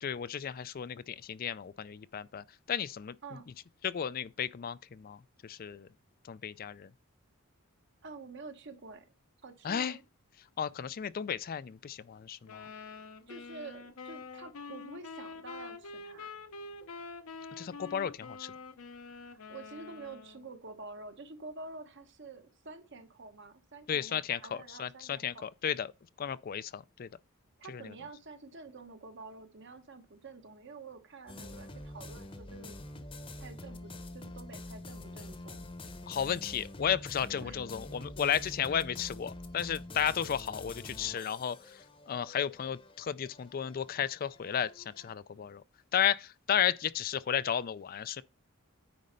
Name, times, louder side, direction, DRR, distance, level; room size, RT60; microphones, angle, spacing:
voice 1, 0.0-3.1 3.8-5.2 5.4-5.9 6.3-6.9 9.6-10.0 10.6-12.7 17.6-18.5 23.9-25.9 26.2-27.1 27.7-27.8 36.1-41.6 42.1-45.6 45.9-48.2, left 8 dB, 40° left, 0.3 m, -33 dB
voice 2, 8.0-9.1 9.4-10.0 13.3-16.3 19.5-25.5 27.6-32.8 33.4-35.6 37.4-37.6, right 3 dB, 55° right, 1.1 m, -48 dB
sound 1, 12.5-20.5, left 4 dB, 80° left, 0.8 m, -46 dB
sound 2, 31.3-45.1, left 1 dB, 25° left, 0.9 m, -46 dB
9.4 x 4.3 x 5.1 m
head